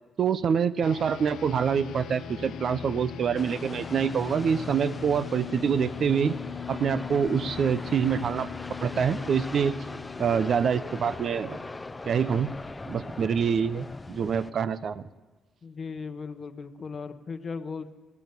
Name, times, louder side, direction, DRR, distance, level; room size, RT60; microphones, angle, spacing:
voice 1, 0.2-6.4 6.7-8.5 8.8-9.8 10.2-11.6 12.1-12.5 12.9-15.0, right 7 dB, 55° right, 15 dB, 0.6 m, -26 dB
sound 1, 0.8-12.5, left 8 dB, 75° left, 0.6 m, -40 dB
sound 2, 3.4-14.5, left 2 dB, 20° left, 0.6 m, -40 dB
voice 2, 15.6-17.9, left 5 dB, 40° left, 10 dB, 0.9 m, -37 dB
16.0 x 8.5 x 8.2 m, 1.3 s
cardioid pair, 90°, 0 cm